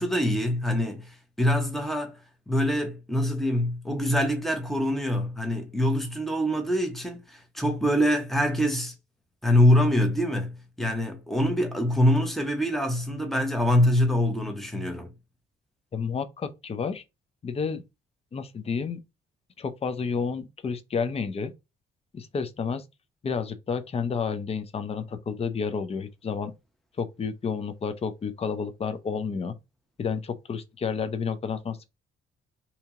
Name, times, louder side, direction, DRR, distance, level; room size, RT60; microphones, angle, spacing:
voice 1, 0.0-2.2 2.5-8.9 9.4-15.1, equal, ahead, 1.0 m, -24 dB
voice 2, 15.9-17.0 17.4-17.8 18.3-19.0 19.6-21.5 22.1-22.8 23.2-26.5 27.0-29.5 30.0-31.9, left 5 dB, 30° left, 0.5 m, -30 dB
2.9 x 2.7 x 3.6 m
cardioid pair, 90°, 20 cm